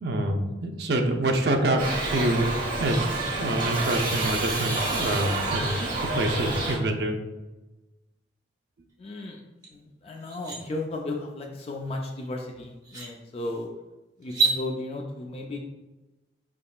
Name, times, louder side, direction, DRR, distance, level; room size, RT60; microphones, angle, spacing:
voice 1, 0.0-2.4 2.8-3.1 3.4-7.2, right 1 dB, 70° right, 3 dB, 0.6 m, -26 dB
Shout / Livestock farm animals working animals, 1.8-6.8, right 2 dB, 50° right, 1.2 m, -29 dB
voice 2, 9.0-9.4 9.7-13.7 14.2-15.6, left 2 dB, 35° left, 1 dB, 0.4 m, -34 dB
sound 1, 9.6-9.7 10.1-10.6 12.2-12.3 12.8-13.1 14.2-14.6, right 4 dB, 20° right, 0.9 m, -26 dB
5.2 x 3.6 x 2.3 m, 1.1 s
head